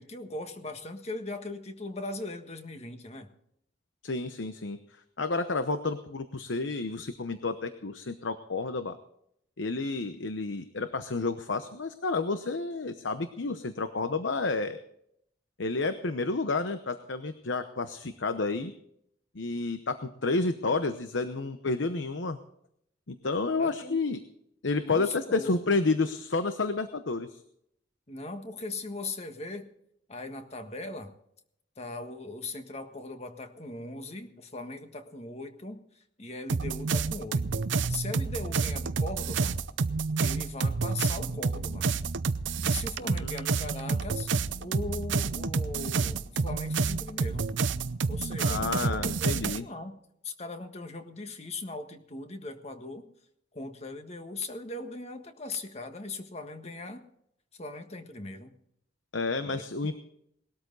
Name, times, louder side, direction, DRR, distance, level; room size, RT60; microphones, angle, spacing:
voice 1, 0.0-3.3 23.6-24.1 24.8-25.6 28.1-29.7 30.1-31.1 31.8-39.6 40.2-41.9 42.6-44.3 44.6-47.5 48.1-50.0 50.2-53.1 53.5-57.0 57.6-58.5 59.4-59.6, left 2 dB, 35° left, 7 dB, 1.5 m, -39 dB
voice 2, 4.0-9.0 9.6-14.8 15.6-18.7 19.3-22.4 23.1-24.2 24.6-27.4 43.0-43.4 43.9-44.0 48.4-49.7 59.1-60.0, left 3 dB, 85° left, 10 dB, 0.9 m, -30 dB
sound 1, 36.5-49.6, right 4 dB, 85° right, 0.7 m, -29 dB
19.5 x 13.0 x 4.0 m, 0.73 s
head